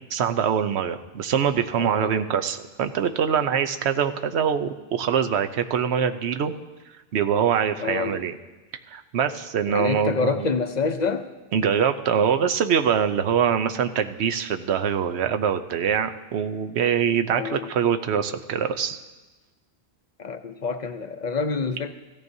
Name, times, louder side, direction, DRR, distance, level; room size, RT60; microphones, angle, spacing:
voice 1, 0.1-6.5 7.1-8.3 8.9-10.5 11.5-19.0, right 7 dB, 85° right, 8 dB, 1.0 m, -24 dB
voice 2, 1.8-2.2 7.8-8.2 9.7-11.3 17.3-17.7 20.2-21.9, left 4 dB, 50° left, 7 dB, 0.6 m, -27 dB
16.0 x 14.0 x 2.7 m, 1.2 s
omnidirectional pair, 1.1 m